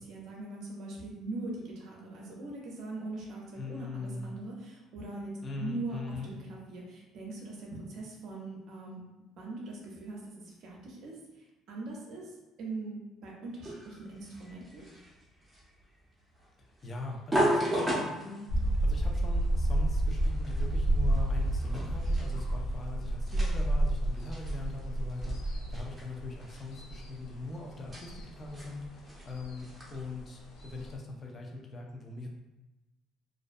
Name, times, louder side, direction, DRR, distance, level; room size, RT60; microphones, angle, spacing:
voice 1, 0.0-9.0 9.4-12.3 12.6-14.9, right 2 dB, 65° right, -2 dB, 0.6 m, -41 dB
voice 2, 3.6-4.3 5.4-6.3 16.6-32.3, left 3 dB, 30° left, 0 dB, 0.5 m, -41 dB
sound 1, 13.6-30.1, equal, 15° right, 0.7 m, -37 dB
sound 2, 18.5-30.9, right 1 dB, 80° left, 0.5 m, -30 dB
2.4 x 2.2 x 2.5 m, 1.0 s
cardioid pair, 125°, 0 cm